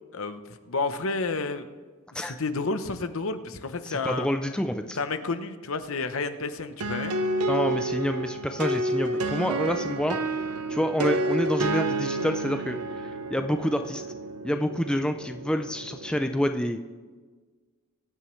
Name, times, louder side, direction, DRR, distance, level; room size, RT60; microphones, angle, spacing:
voice 1, 0.7-1.7 2.1-4.3 5.0-7.1 14.5-14.6, left 3 dB, 65° left, 10 dB, 0.8 m, -30 dB
voice 2, 3.8-5.0 7.5-10.2 10.7-14.0 14.4-16.8, equal, 5° left, 6 dB, 0.4 m, -28 dB
sound 1, 6.8-16.4, right 2 dB, 90° right, 0.8 m, -30 dB
22.5 x 9.2 x 3.2 m, 1.4 s
head